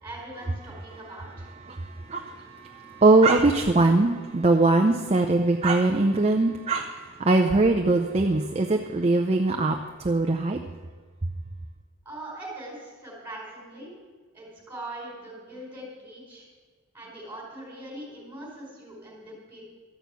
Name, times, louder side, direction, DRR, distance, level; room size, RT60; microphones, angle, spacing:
voice 1, 0.0-1.5 12.0-13.9 14.3-16.5 16.9-19.6, right 1 dB, 10° right, -4 dB, 4.5 m, -41 dB
voice 2, 1.7-6.9 7.2-9.8 10.0-10.6, right 2 dB, 30° right, 4 dB, 0.5 m, -21 dB
13.0 x 6.5 x 8.1 m, 1.5 s
head